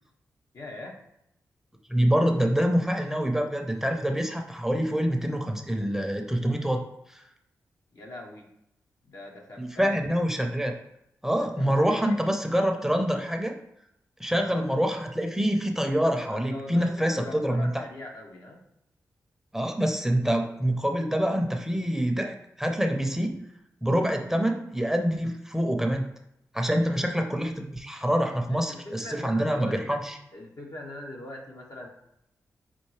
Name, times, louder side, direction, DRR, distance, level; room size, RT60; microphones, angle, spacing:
voice 1, 0.5-1.0 7.9-8.5 9.0-10.0 11.4-12.2 14.4-14.6 16.3-18.6 26.7-27.1 28.5-30.0 30.3-31.9, left 1 dB, 60° left, -1 dB, 1.1 m, -42 dB
voice 2, 1.9-7.2 9.6-10.7 11.2-13.6 14.2-17.7 19.5-23.4 23.8-26.1 26.5-30.2, equal, 5° right, 3 dB, 0.7 m, -26 dB
5.5 x 2.7 x 3.2 m, 0.80 s
supercardioid pair, 40°, 7 cm